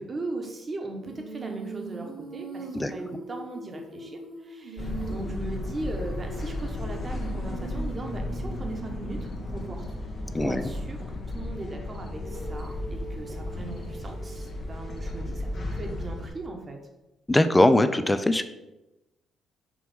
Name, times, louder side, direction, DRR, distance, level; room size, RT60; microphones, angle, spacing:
voice 1, 0.0-9.8 10.4-16.8, right 2 dB, 35° right, 3 dB, 1.1 m, -38 dB
Female singing, 1.0-9.9 12.1-16.3, right 3 dB, 85° right, 1.5 m, -42 dB
sound 1, 4.8-16.3, left 1 dB, 45° left, 1.1 m, -34 dB
voice 2, 10.3-10.7 17.3-18.4, left 1 dB, 15° left, 11 dB, 0.4 m, -21 dB
6.2 x 3.0 x 5.4 m, 0.99 s
cardioid pair, 90°, 0 cm